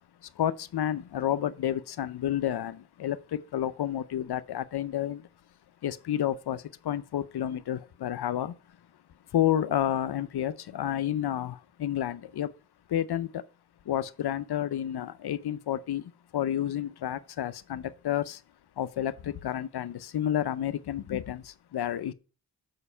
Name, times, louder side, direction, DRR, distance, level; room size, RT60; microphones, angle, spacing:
voice 1, 0.4-5.3 5.8-8.5 9.3-12.5 12.9-13.4 13.9-18.4 18.8-22.1, left 11 dB, 80° left, 0.6 m, -30 dB
6.7 x 5.2 x 5.5 m
cardioid pair, 60°, 39 cm